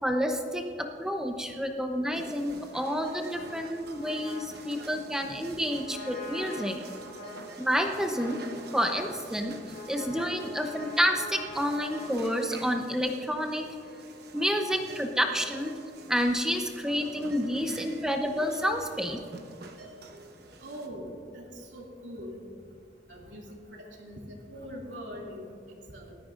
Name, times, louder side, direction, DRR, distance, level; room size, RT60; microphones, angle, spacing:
voice 1, 0.0-6.8 7.6-8.4 8.7-9.6 9.9-13.7 14.3-15.7 16.1-19.2, equal, 5° right, 3 dB, 0.8 m, -29 dB
sound 1, 2.1-20.9, right 2 dB, 60° right, 1.1 m, -47 dB
Trumpet, 3.3-12.2, left 1 dB, 70° left, 2.7 m, -45 dB
voice 2, 20.6-22.4 23.1-26.1, equal, 90° right, -2 dB, 2.5 m, -42 dB
19.0 x 13.5 x 2.6 m, 2.3 s
head